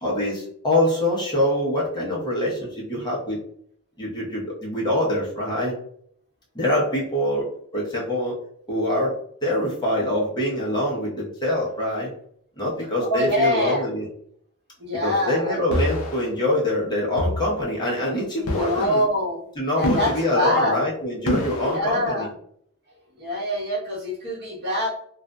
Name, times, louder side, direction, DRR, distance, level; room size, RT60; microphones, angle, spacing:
voice 1, 0.0-3.4 4.0-5.8 6.5-7.5 7.7-8.3 8.7-9.1 9.4-12.1 12.6-14.1 15.0-19.0 19.6-22.3, left 1 dB, 20° left, -5 dB, 0.8 m, -24 dB
voice 2, 13.1-13.9 14.8-15.6 18.4-19.4 19.8-20.9 21.6-22.3 23.1-24.9, left 1 dB, 50° right, -5 dB, 1.0 m, -24 dB
sound 1, 15.7-16.2 17.2-17.5 18.5-19.0 19.8-20.4 21.3-21.8, left 1 dB, 75° left, 0.5 m, -26 dB
2.5 x 2.4 x 2.2 m, 0.65 s
head